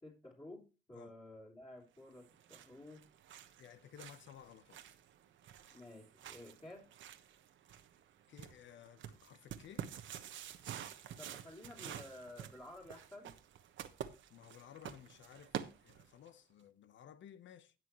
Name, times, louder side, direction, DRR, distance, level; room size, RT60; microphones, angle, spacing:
voice 1, 0.0-3.1 5.7-6.9 11.1-13.4, left 1 dB, 20° left, 3.5 m, -53 dB
sound 1, 2.1-16.3, right 10 dB, 75° right, 1.2 m, -49 dB
voice 2, 3.6-4.8 8.3-9.9 14.3-17.7, left 9 dB, 70° left, 1.0 m, -56 dB
17.5 x 6.2 x 3.1 m
cardioid pair, 90°, 20 cm